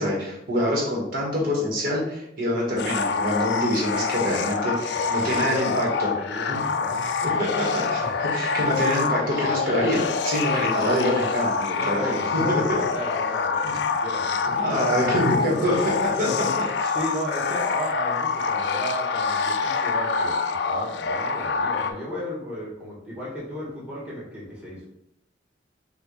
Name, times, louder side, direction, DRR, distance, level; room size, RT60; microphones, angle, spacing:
voice 1, 0.0-6.1 6.5-6.6 6.9-7.0 7.4-12.8 13.6-13.7 14.5-15.7 16.2-16.9, equal, 50° right, -3 dB, 1.6 m, -26 dB
sound 1, 2.8-21.9, left 5 dB, 70° left, 0.4 m, -26 dB
voice 2, 4.9-7.1 8.0-8.1 9.4-9.6 11.7-14.6 14.9-15.0 15.6-15.8 16.2-16.5 16.9-20.4 20.6-24.9, equal, 5° right, -7 dB, 1.7 m, -34 dB
6.1 x 2.5 x 3.2 m, 0.78 s
head